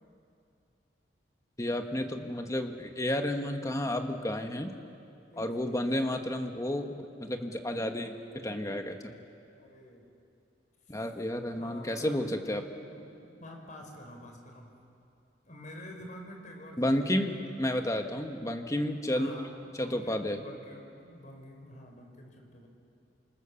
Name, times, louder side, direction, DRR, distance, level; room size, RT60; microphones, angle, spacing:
voice 1, 1.6-4.7 5.4-9.2 10.9-12.6 16.8-19.3 19.8-20.4, left 1 dB, 20° left, 5 dB, 1.6 m, -31 dB
voice 2, 5.3-6.3 9.5-10.1 10.9-11.0 11.6-14.8 15.4-17.7 19.1-22.7, left 1 dB, 45° left, 2 dB, 4.9 m, -48 dB
28.5 x 26.5 x 7.3 m, 2.6 s
head